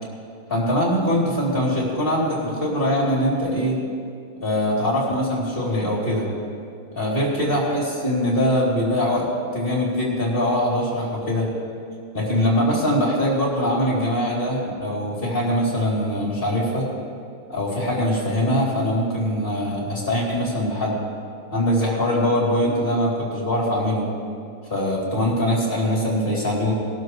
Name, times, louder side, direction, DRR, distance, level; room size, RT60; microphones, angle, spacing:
voice 1, 0.5-3.8 4.4-6.3 6.9-11.5 12.1-16.9 17.5-21.0 21.5-24.1 24.7-26.7, equal, 25° left, -5 dB, 3.6 m, -22 dB
21.0 x 12.0 x 3.2 m, 2.3 s
omnidirectional pair, 2.1 m